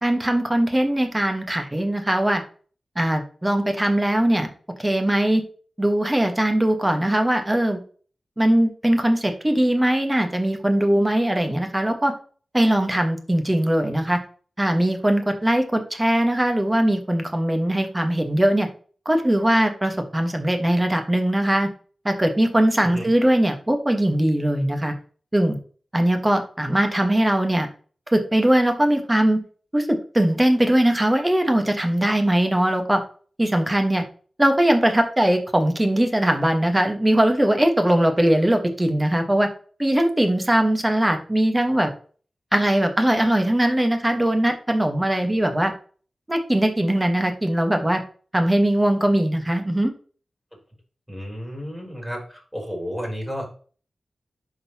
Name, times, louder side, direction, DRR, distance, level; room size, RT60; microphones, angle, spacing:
voice 1, 0.0-2.4 2.9-4.5 4.8-5.4 5.8-7.8 8.4-12.1 12.5-14.2 14.6-18.7 19.0-21.7 22.0-24.9 25.3-25.6 25.9-27.7 28.1-29.4 29.7-33.0 33.4-34.0 34.4-39.5 39.8-41.9 42.5-45.7 46.3-48.0 48.3-49.9, right 1 dB, 15° right, 5 dB, 1.4 m, -20 dB
voice 2, 51.1-53.5, equal, ahead, 0 dB, 3.7 m, -32 dB
11.0 x 4.0 x 3.0 m, 0.41 s
wide cardioid pair, 70°, 0 cm